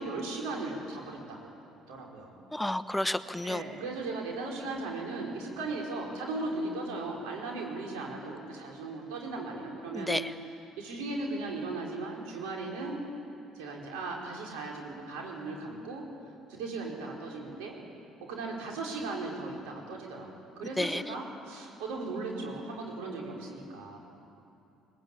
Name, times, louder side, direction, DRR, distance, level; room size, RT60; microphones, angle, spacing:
voice 1, 0.0-1.5 1.9-2.3 3.4-10.3 10.8-13.0 13.5-16.0 16.5-17.8 18.3-24.0, right 3 dB, 85° right, -1 dB, 4.8 m, -37 dB
voice 2, 2.5-3.6 9.9-10.3 20.8-21.0, left 1 dB, 5° left, 13 dB, 0.7 m, -31 dB
21.0 x 20.5 x 8.7 m, 2.7 s
supercardioid pair, 70°, 0 cm